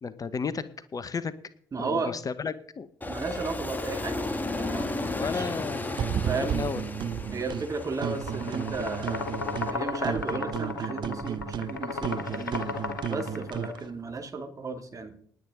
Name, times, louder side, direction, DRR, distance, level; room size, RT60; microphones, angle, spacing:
voice 1, 0.0-0.6 0.9-1.3 1.8-2.9 5.1-6.0 6.3-6.8, left 5 dB, 35° left, 15 dB, 1.0 m, -33 dB
voice 2, 1.7-2.2 3.0-5.5 6.3-6.6 7.3-9.3 9.7-12.6 13.1-15.2, right 4 dB, 35° right, 4 dB, 2.8 m, -34 dB
Aircraft, 3.0-9.7, left 2 dB, 20° left, 2.5 m, -34 dB
sound 1, 6.0-7.7 8.0-9.8 10.0-13.8, right 9 dB, 50° right, 0.8 m, -33 dB
sound 2, 8.1-13.8, left 4 dB, 85° left, 1.6 m, -34 dB
19.5 x 8.7 x 3.9 m, 0.62 s
figure-of-eight pair, 45°, 10 cm